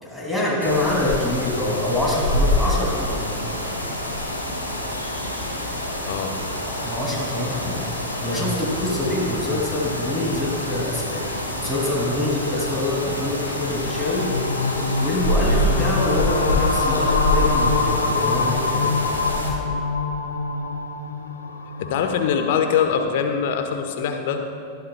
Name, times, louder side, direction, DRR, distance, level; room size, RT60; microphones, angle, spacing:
voice 1, 0.0-3.4 6.8-11.2 11.6-14.4 15.0-18.9, left 1 dB, 5° right, -5 dB, 2.7 m, -25 dB
sound 1, 0.6-19.5, left 1 dB, 85° left, 1.8 m, -26 dB
voice 2, 6.1-6.4 21.8-24.4, left 7 dB, 55° left, 6 dB, 1.1 m, -23 dB
sound 2, 13.8-23.1, left 4 dB, 70° left, 0.8 m, -25 dB
20.0 x 12.5 x 2.3 m, 2.7 s
figure-of-eight pair, 90°, 0 cm